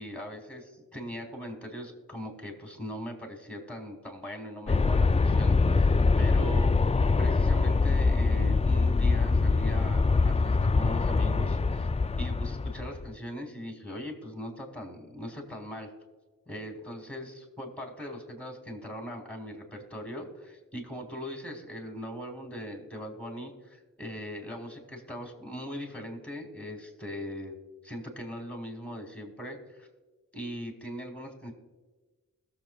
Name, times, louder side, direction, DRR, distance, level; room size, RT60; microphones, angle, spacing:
voice 1, 0.0-6.7 7.2-11.9 12.2-15.9 16.5-27.6 27.8-29.9 30.3-31.5, equal, 5° left, 1 dB, 3.6 m, -40 dB
Aircraft, 4.7-13.1, left 4 dB, 20° left, 0.4 m, -24 dB
21.0 x 7.5 x 2.4 m, 1.3 s
cardioid pair, 50°, 33 cm